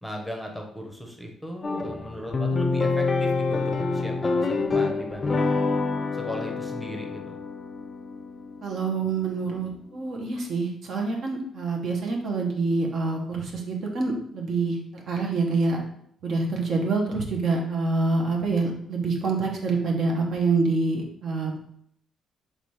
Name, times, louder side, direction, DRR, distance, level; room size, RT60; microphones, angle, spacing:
voice 1, 0.0-5.5 6.1-7.4, equal, ahead, 1 dB, 0.8 m, -37 dB
sound 1, 1.6-10.1, left 3 dB, 30° left, 0.4 m, -27 dB
voice 2, 8.6-15.8 16.2-21.6, right 3 dB, 60° right, 1 dB, 0.9 m, -26 dB
4.0 x 3.3 x 3.2 m, 0.67 s
cardioid pair, 90°, 0 cm